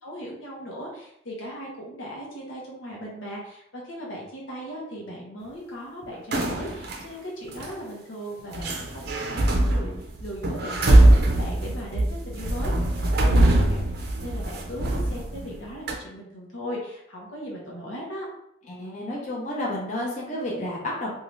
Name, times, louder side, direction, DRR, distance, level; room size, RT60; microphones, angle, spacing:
voice 1, 0.0-9.9 10.2-13.9 14.2-18.3, equal, 75° left, -3 dB, 0.8 m, -38 dB
sound 1, 6.3-7.0 7.5-7.7 8.5-15.6 15.9-16.0, right 1 dB, 50° right, 0.5 m, -22 dB
voice 2, 18.7-21.1, left 1 dB, 35° left, -4 dB, 0.7 m, -31 dB
2.7 x 2.3 x 3.1 m, 0.75 s
head